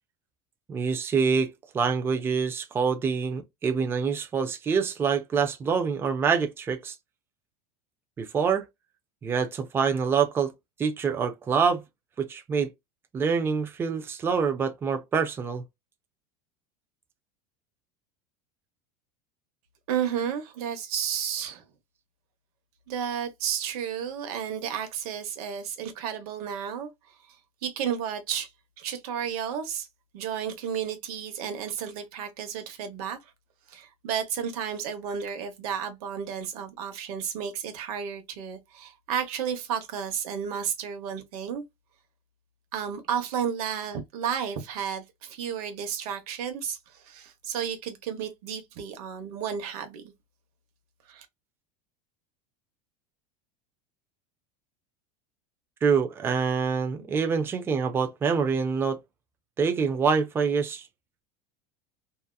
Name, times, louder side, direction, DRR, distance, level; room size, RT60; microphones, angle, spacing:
voice 1, 0.7-1.5 1.7-6.9 8.2-8.6 9.2-10.5 10.8-11.8 12.2-12.7 13.1-15.6 55.8-59.0 59.6-60.8, right 6 dB, 10° right, 0.3 m, -26 dB
voice 2, 19.9-21.6 22.9-26.9 27.3-27.4 27.6-28.5 28.8-29.9 30.1-33.2 33.7-41.6 42.7-50.1 51.1-51.3, right 8 dB, 75° right, 1.0 m, -32 dB
2.7 x 2.3 x 2.2 m
supercardioid pair, 155°, 19 cm